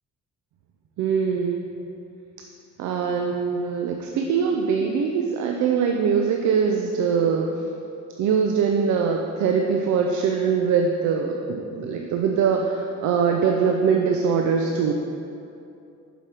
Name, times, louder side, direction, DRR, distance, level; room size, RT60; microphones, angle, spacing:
voice 1, 1.0-1.7 2.8-7.5 8.2-14.9, right 6 dB, 75° right, 2 dB, 0.5 m, -22 dB
6.1 x 5.1 x 4.3 m, 2.7 s
cardioid pair, 90°, 30 cm